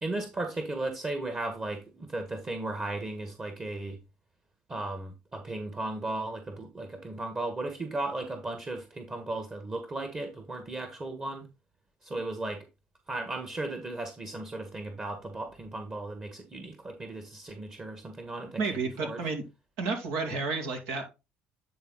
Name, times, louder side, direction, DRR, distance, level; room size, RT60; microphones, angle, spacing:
voice 1, 0.0-4.0 4.7-11.5 12.0-12.7 13.1-18.6 19.0-19.3, right 2 dB, 30° right, 1.6 m, -36 dB
voice 2, 18.6-19.4 19.8-21.0, right 4 dB, 75° right, 2.2 m, -31 dB
9.4 x 3.9 x 3.9 m
hypercardioid pair, 65°, 4 cm